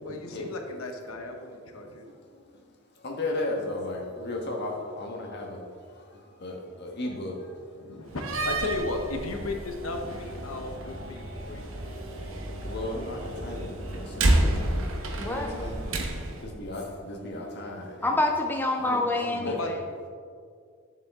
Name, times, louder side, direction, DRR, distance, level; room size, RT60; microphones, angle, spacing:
voice 1, 0.0-2.0 7.7-11.6 18.9-19.0 19.4-19.7, left 2 dB, 85° left, 4 dB, 0.9 m, -35 dB
voice 2, 3.0-5.6 6.4-7.4 12.6-14.8 15.2-16.0 16.4-18.2 18.8-19.6, left 2 dB, 55° left, 1 dB, 1.4 m, -35 dB
Slam, 8.1-16.5, right 1 dB, 70° right, 1.1 m, -30 dB
sound 1, 9.8-14.8, equal, 40° left, 2.1 m, -44 dB
voice 3, 15.2-15.5 18.0-19.7, left 2 dB, 10° left, 2 dB, 0.5 m, -27 dB
9.8 x 7.1 x 3.6 m, 2.2 s
head